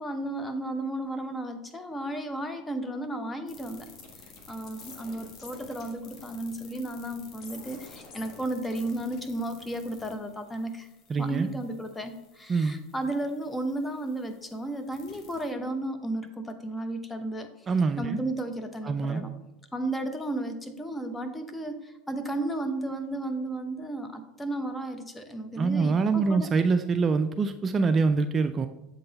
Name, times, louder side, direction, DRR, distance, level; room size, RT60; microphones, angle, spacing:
voice 1, 0.0-3.9 4.5-10.9 11.2-17.5 18.0-19.3 19.7-26.5, right 1 dB, 10° left, 7 dB, 0.8 m, -33 dB
sound 1, 3.5-15.5, left 4 dB, 50° left, 1.2 m, -51 dB
voice 2, 11.1-11.5 12.5-12.8 17.7-18.2 18.8-19.2 25.6-28.7, right 4 dB, 30° right, 9 dB, 0.3 m, -25 dB
7.6 x 3.9 x 4.0 m, 0.93 s
hypercardioid pair, 95°, 0 cm